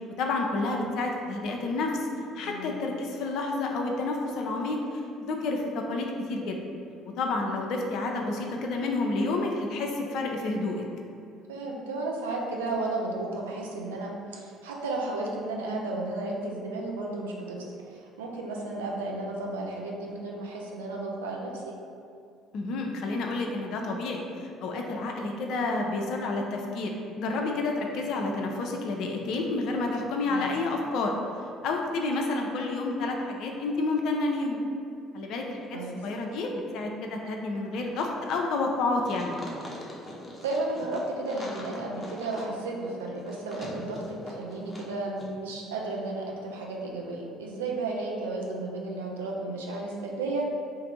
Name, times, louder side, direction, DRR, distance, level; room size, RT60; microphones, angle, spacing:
voice 1, 0.2-1.9 2.3-4.8 5.2-6.6 7.0-10.8 22.5-24.3 24.6-26.9 27.2-31.1 31.6-34.6 35.1-39.4, left 3 dB, 55° left, 1 dB, 0.4 m, -29 dB
voice 2, 2.4-2.7 11.5-21.7 30.2-30.6 35.7-36.0 40.4-50.5, right 2 dB, 75° right, -2 dB, 0.4 m, -33 dB
sound 1, 39.0-44.9 45.2-45.3, left 1 dB, 15° left, 0.8 m, -43 dB
2.5 x 2.5 x 4.0 m, 2.4 s
figure-of-eight pair, 55°, 0 cm